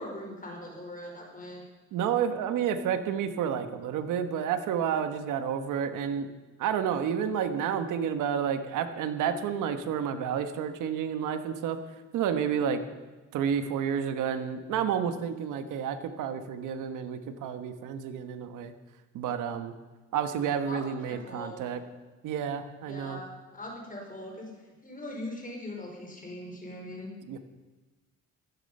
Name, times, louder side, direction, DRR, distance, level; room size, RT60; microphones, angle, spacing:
voice 1, 0.0-1.6 20.6-21.6 22.8-27.1, left 1 dB, 25° left, 0 dB, 5.0 m, -41 dB
voice 2, 1.9-6.3 6.6-11.8 12.1-12.8 13.3-18.7 19.1-19.7 20.1-21.8 22.2-23.2 27.3-27.4, right 8 dB, 90° right, 9 dB, 1.5 m, -30 dB
16.5 x 14.0 x 5.6 m, 1.2 s
cardioid pair, 90°, 30 cm